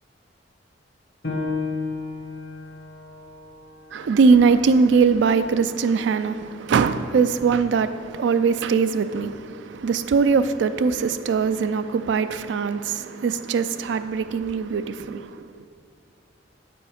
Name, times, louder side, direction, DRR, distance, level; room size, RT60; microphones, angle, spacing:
Piano, 1.2-6.4 6.9-7.0 7.6-8.1, left 3 dB, 60° left, 1.1 m, -34 dB
voice 1, 3.9-15.7, right 5 dB, 70° right, 0.3 m, -21 dB
7.9 x 5.1 x 5.0 m
head